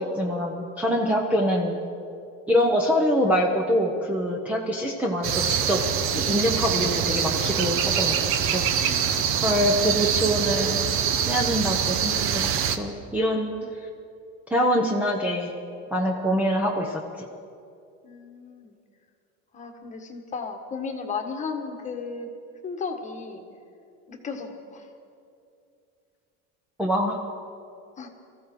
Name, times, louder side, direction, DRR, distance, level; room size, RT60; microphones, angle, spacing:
voice 1, 0.0-1.8 2.5-5.8 6.1-8.1 8.5-9.0 9.4-10.8 11.3-13.5 14.5-15.5 15.9-17.3 26.8-27.2, equal, 5° right, -1 dB, 0.9 m, -24 dB
sound 1, 5.2-12.8, right 8 dB, 45° right, 1.0 m, -24 dB
voice 2, 8.8-9.5 13.6-13.7 18.0-18.8 19.5-22.3 22.6-23.4 24.1-24.9 28.0-28.1, left 5 dB, 25° left, 4 dB, 1.5 m, -35 dB
24.0 x 15.0 x 3.9 m, 2.5 s
supercardioid pair, 145°, 31 cm